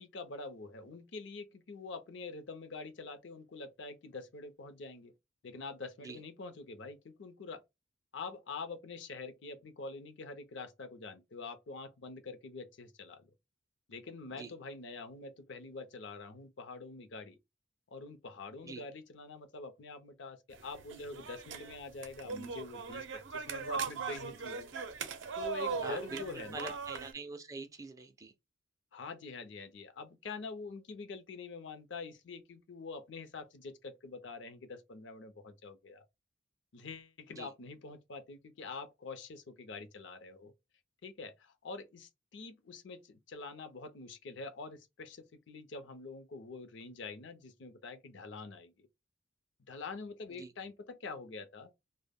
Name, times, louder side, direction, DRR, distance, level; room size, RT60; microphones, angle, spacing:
voice 1, 0.0-5.1 5.4-7.6 8.1-13.3 13.9-17.4 17.9-24.7 25.4-26.8 28.9-36.0 36.7-40.5 41.0-48.9 49.7-51.7, left 4 dB, 70° left, 0.5 m, -46 dB
sound 1, 20.5-27.1, right 5 dB, 70° right, 0.5 m, -39 dB
voice 2, 25.8-28.3 37.4-37.5 50.4-50.5, right 3 dB, 15° right, 0.3 m, -44 dB
2.1 x 2.0 x 3.3 m
head